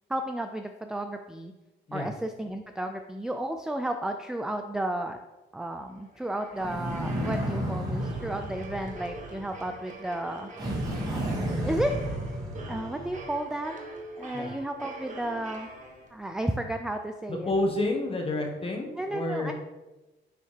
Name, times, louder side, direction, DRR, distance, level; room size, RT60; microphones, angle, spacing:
voice 1, 0.1-1.5 1.9-5.2 5.5-10.5 11.6-11.9 12.7-13.7 14.2-15.7 16.1-17.5 19.0-19.5, right 1 dB, 5° right, 5 dB, 0.3 m, -32 dB
sound 1, 5.9-16.4, right 2 dB, 40° right, 1.2 m, -44 dB
sound 2, 6.6-9.6 10.6-13.3, equal, 20° right, 2.1 m, -32 dB
voice 2, 17.3-19.5, left 2 dB, 30° left, 1 dB, 1.3 m, -29 dB
9.7 x 3.3 x 3.3 m, 1.1 s
cardioid pair, 90°, 20 cm